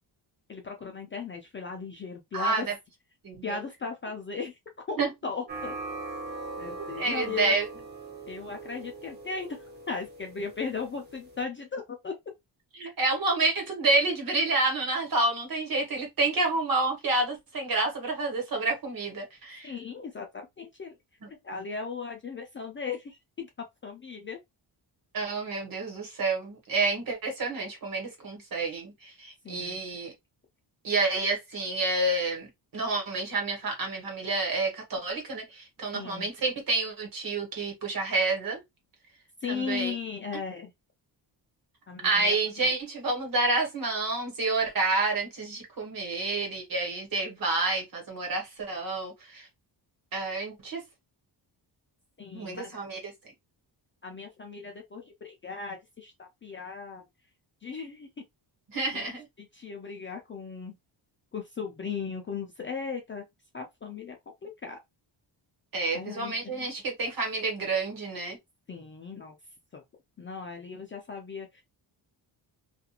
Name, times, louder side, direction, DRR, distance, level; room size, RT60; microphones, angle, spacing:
voice 1, 0.5-2.7 3.4-4.6 4.9-5.7 6.6-7.5 8.3-12.1 12.8-12.9 19.6-20.9 21.4-24.4 29.4-29.8 35.9-36.3 39.4-40.7 41.9-42.4 42.6-42.7 52.2-52.7 54.0-57.0 57.6-58.1 58.9-59.0 59.4-60.7 61.3-63.2 63.5-64.2 64.4-64.8 65.9-66.7 68.7-69.4 69.7-69.8 70.2-71.6, left 5 dB, 30° left, 0.4 m, -37 dB
voice 2, 2.3-2.7 3.2-3.6 5.0-5.1 6.8-7.7 12.8-19.7 21.2-21.3 25.1-30.1 30.8-38.6 39.5-39.9 42.0-49.5 50.1-50.8 52.3-53.1 58.7-59.3 65.7-68.4, right 3 dB, 50° right, 1.3 m, -29 dB
sound 1, 5.5-11.4, right 3 dB, 25° right, 0.6 m, -41 dB
2.5 x 2.3 x 2.8 m
wide cardioid pair, 165°, 45 cm